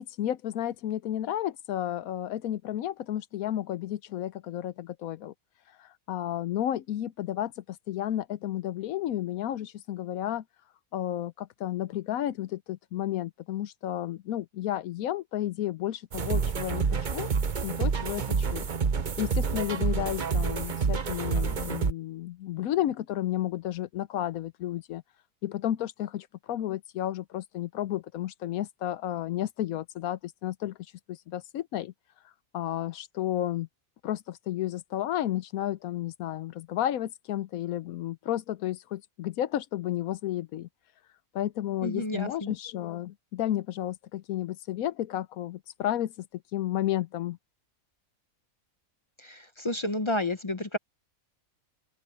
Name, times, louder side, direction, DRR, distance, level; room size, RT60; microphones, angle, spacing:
voice 1, 0.0-5.3 5.8-10.4 10.9-17.3 17.6-18.7 19.2-25.0 25.4-30.8 31.1-31.9 32.5-33.7 34.0-40.7 41.3-47.4, left 12 dB, 80° left, 1.1 m, -32 dB
sound 1, 16.1-21.9, right 5 dB, 40° right, 0.9 m, -28 dB
voice 2, 41.8-42.5 49.2-50.8, left 1 dB, 30° left, 0.5 m, -31 dB
open air
omnidirectional pair, 1.5 m